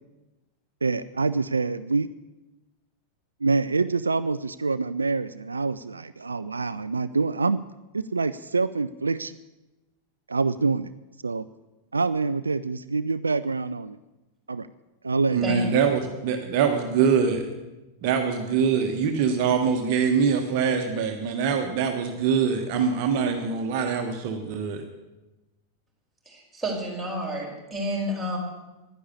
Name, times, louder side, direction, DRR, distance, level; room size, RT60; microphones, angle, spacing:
voice 1, 0.8-2.1 3.4-7.6 7.9-9.3 10.3-10.9 11.2-11.4 11.9-14.0 14.5-14.7 15.0-15.5, right 4 dB, 75° right, 14 dB, 0.4 m, -26 dB
voice 2, 15.3-17.4 18.0-24.8, right 6 dB, 45° right, 4 dB, 1.4 m, -24 dB
voice 3, 26.3-28.4, equal, 5° right, -4 dB, 5.1 m, -30 dB
11.0 x 10.0 x 8.4 m, 1.1 s
figure-of-eight pair, 90°, 0 cm